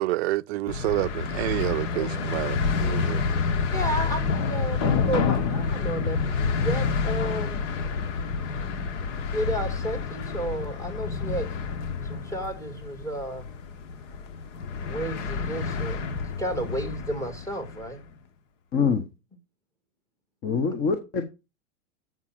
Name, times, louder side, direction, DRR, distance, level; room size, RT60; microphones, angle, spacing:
voice 1, 0.0-3.2, right 18 dB, 55° right, 0.5 m, -28 dB
sound 1, 0.7-17.9, left 5 dB, 65° left, 1.4 m, -28 dB
voice 2, 1.9-2.3 3.7-7.6 9.3-11.5 12.0-13.5 14.9-16.0 16.4-18.0, right 1 dB, 10° left, 2.0 m, -32 dB
voice 3, 18.7-19.0 20.4-21.2, left 5 dB, 25° left, 1.0 m, -24 dB
7.5 x 6.1 x 5.9 m
supercardioid pair, 145°, 39 cm